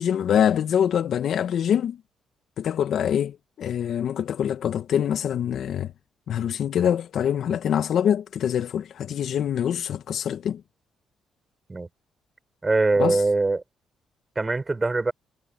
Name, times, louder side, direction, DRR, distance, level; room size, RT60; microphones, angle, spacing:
voice 1, 0.0-2.0 2.6-5.9 6.3-10.6 13.0-13.2, left 9 dB, 65° left, 1.3 m, -24 dB
voice 2, 12.6-13.6 14.3-15.1, right 3 dB, 20° right, 4.7 m, -22 dB
cardioid pair, 90°, 0 cm